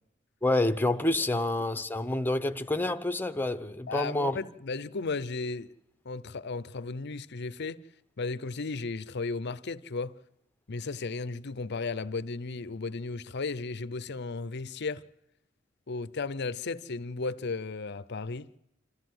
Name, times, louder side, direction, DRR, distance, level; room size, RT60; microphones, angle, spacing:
voice 1, 0.4-4.4, left 2 dB, 10° left, 0.9 m, -28 dB
voice 2, 3.9-5.7 6.0-7.8 8.2-10.2 10.7-15.0 15.9-18.5, left 3 dB, 55° left, 0.7 m, -35 dB
27.5 x 14.0 x 7.9 m
head